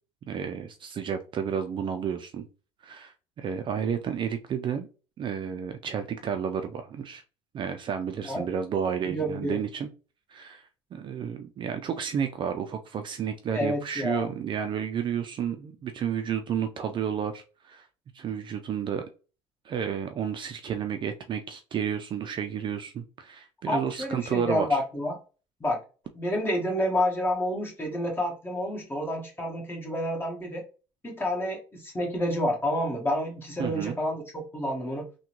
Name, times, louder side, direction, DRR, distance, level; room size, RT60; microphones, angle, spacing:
voice 1, 0.3-2.5 2.8-4.9 5.2-7.2 7.5-9.9 10.3-17.9 18.1-19.0 19.7-24.8 33.6-34.0, right 7 dB, 40° right, 7 dB, 0.4 m, -31 dB
voice 2, 9.1-9.6 13.5-14.3 23.7-25.2 25.6-25.8 26.1-30.6 31.0-35.0, left 1 dB, 15° left, 0 dB, 1.5 m, -29 dB
3.5 x 2.2 x 3.0 m, 0.34 s
supercardioid pair, 95°, 13 cm